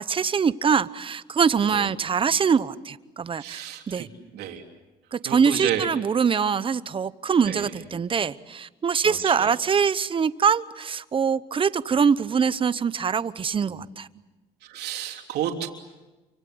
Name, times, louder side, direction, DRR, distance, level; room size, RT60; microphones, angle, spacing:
voice 1, 0.0-4.1 5.1-14.1, right 6 dB, 30° right, 0.9 m, -23 dB
voice 2, 3.4-4.1 4.3-4.6 5.2-5.9 7.5-7.7 9.0-9.5 14.6-15.7, right 10 dB, 75° right, 3.3 m, -31 dB
28.5 x 25.0 x 7.9 m
cardioid pair, 110°, 17 cm